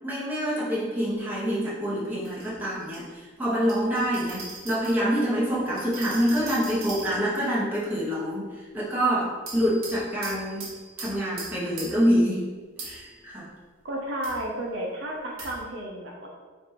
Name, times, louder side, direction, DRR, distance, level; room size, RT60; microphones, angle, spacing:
voice 1, 0.0-10.7 11.0-12.5 12.8-13.5, equal, 10° right, -8 dB, 0.9 m, -26 dB
sound 1, 1.0-1.1 2.2-3.0 3.7-5.0 5.8-7.5 9.5-12.1 12.8-13.1 14.2-14.4 15.4-15.6, right 3 dB, 80° right, 1.2 m, -40 dB
voice 2, 13.8-16.3, right 1 dB, 60° right, -1 dB, 0.5 m, -32 dB
3.2 x 2.5 x 4.2 m, 1.4 s
head